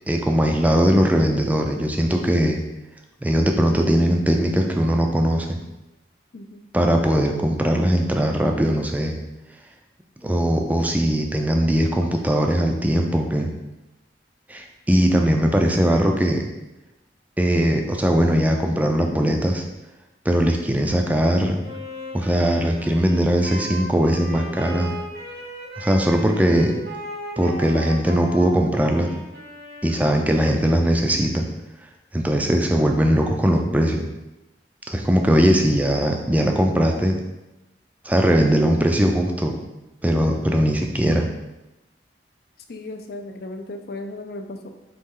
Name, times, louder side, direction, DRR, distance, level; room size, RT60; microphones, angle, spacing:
voice 1, 0.1-2.6 3.2-5.6 6.7-9.2 10.2-13.5 14.5-16.4 17.4-19.6 20.3-21.6 22.1-24.9 25.8-26.8 27.4-29.1 29.8-31.5 32.1-34.1 34.9-37.2 38.0-39.6 40.0-41.3, equal, 10° right, 2 dB, 0.4 m, -20 dB
voice 2, 6.3-6.6 42.7-44.7, left 2 dB, 60° left, 5 dB, 0.5 m, -35 dB
Wind instrument woodwind instrument, 21.6-30.6, equal, 75° right, 1.4 m, -36 dB
4.3 x 3.0 x 3.7 m, 0.98 s
head